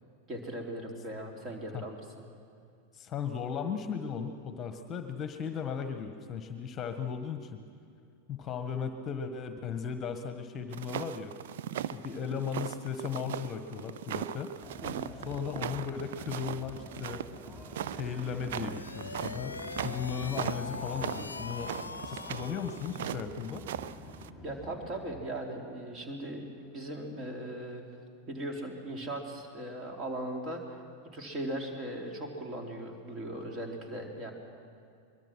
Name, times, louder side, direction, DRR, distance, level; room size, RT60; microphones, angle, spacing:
voice 1, 0.3-2.0 14.8-15.1 24.4-27.8 28.3-30.8 31.1-34.3, right 1 dB, 30° right, 2 dB, 3.6 m, -38 dB
voice 2, 2.9-7.6 8.3-11.3 11.9-14.5 15.2-17.2 17.9-21.7 22.0-23.7, left 7 dB, 25° left, 8 dB, 1.4 m, -36 dB
sound 1, 10.7-24.3, right 10 dB, 55° right, 0.6 m, -39 dB
sound 2, 14.6-25.1, left 1 dB, 5° right, 6.4 m, -48 dB
sound 3, 18.4-23.2, left 4 dB, 75° left, 0.6 m, -42 dB
23.0 x 22.0 x 6.2 m, 2.4 s
figure-of-eight pair, 90°, 0 cm